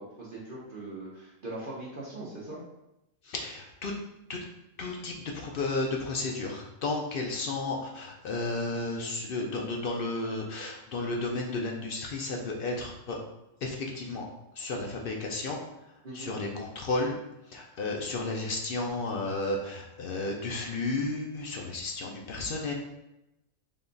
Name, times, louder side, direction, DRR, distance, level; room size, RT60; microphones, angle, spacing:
voice 1, 0.0-2.6 16.0-16.3, right 2 dB, 45° right, -6 dB, 0.8 m, -41 dB
voice 2, 3.2-3.9 4.3-4.4 4.8-13.2 13.6-14.2 14.5-15.6 16.1-17.1 17.5-22.7, left 2 dB, 65° left, 0 dB, 0.6 m, -33 dB
3.7 x 2.3 x 3.8 m, 0.89 s
omnidirectional pair, 1.4 m